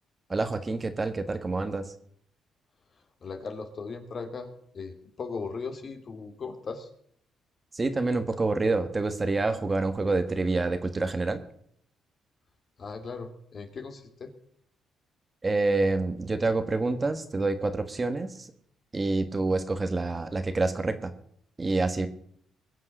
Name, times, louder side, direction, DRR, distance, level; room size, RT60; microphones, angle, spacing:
voice 1, 0.3-1.9 7.7-11.4 15.4-18.5 18.9-21.1 21.6-22.1, right 3 dB, 25° right, 9 dB, 1.5 m, -27 dB
voice 2, 3.2-4.5 4.7-6.9 12.8-14.3, left 4 dB, 45° left, 6 dB, 2.6 m, -38 dB
21.5 x 7.6 x 6.6 m, 0.66 s
cardioid pair, 90°, 0 cm